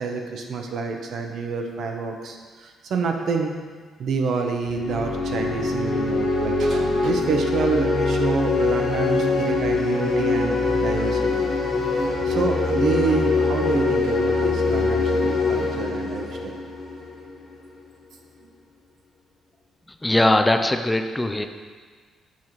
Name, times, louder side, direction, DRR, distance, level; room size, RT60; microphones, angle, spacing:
voice 1, 0.0-3.5 4.0-11.5 12.2-16.5 18.4-18.5, right 4 dB, 65° right, 3 dB, 0.8 m, -27 dB
sound 1, 4.7-17.3, left 3 dB, 65° left, 1.8 m, -23 dB
voice 2, 20.0-21.5, left 1 dB, 10° left, 6 dB, 0.4 m, -20 dB
7.3 x 3.1 x 5.7 m, 1.6 s
cardioid pair, 90°, 0 cm